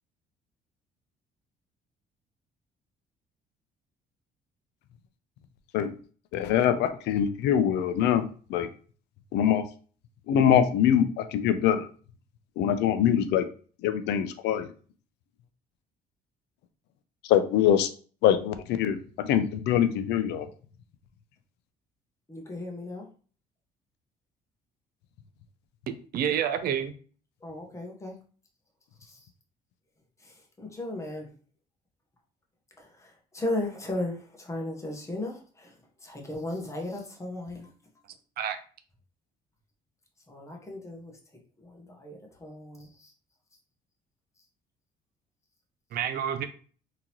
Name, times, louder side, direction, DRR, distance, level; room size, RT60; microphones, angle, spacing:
voice 1, 6.3-8.7 9.3-9.6 10.3-11.9 12.6-13.5 13.8-14.7 17.2-17.9 18.2-20.5, left 9 dB, 85° left, 10 dB, 0.5 m, -24 dB
voice 2, 22.3-23.1 27.4-28.1 29.0-29.3 30.2-31.3 32.8-35.7 36.0-37.7 40.3-41.1 41.6-43.1, left 1 dB, 15° left, 1 dB, 1.1 m, -36 dB
voice 3, 26.1-26.9 38.4-38.6 45.9-46.5, right 9 dB, 65° right, 10 dB, 0.5 m, -28 dB
3.7 x 2.8 x 2.9 m, 0.41 s
cardioid pair, 110°, 17 cm